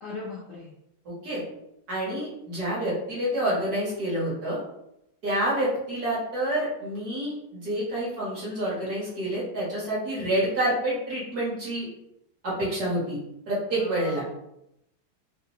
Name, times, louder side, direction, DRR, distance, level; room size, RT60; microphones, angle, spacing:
voice 1, 0.0-0.7 13.7-14.2, left 4 dB, 70° left, -4 dB, 0.7 m, -38 dB
voice 2, 1.1-1.4 1.9-4.6 5.2-11.9 12.4-13.2 13.5-14.2, right 1 dB, 50° right, -6 dB, 1.7 m, -28 dB
3.8 x 2.9 x 2.9 m, 0.82 s
omnidirectional pair, 2.3 m